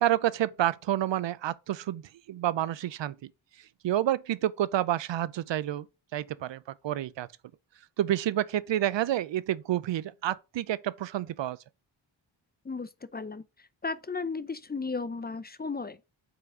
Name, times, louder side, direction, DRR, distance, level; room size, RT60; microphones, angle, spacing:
voice 1, 0.0-3.3 3.8-5.9 6.1-7.3 8.0-11.6, right 12 dB, 65° right, 0.5 m, -29 dB
voice 2, 12.6-16.0, left 4 dB, 20° left, 0.5 m, -35 dB
4.9 x 4.0 x 4.8 m
cardioid pair, 75°, 47 cm